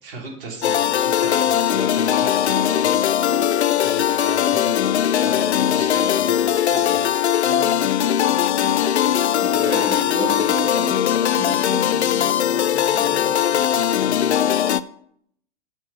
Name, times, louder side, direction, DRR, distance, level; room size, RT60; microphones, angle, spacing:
voice 1, 0.0-3.0 3.8-7.1, right 3 dB, 50° right, -2 dB, 2.8 m, -36 dB
sound 1, 0.6-14.8, left 10 dB, 70° left, 0.5 m, -20 dB
voice 2, 7.4-8.6 9.3-14.4, right 3 dB, 70° right, 0 dB, 2.8 m, -35 dB
7.6 x 6.5 x 5.6 m, 0.69 s
figure-of-eight pair, 100°, 34 cm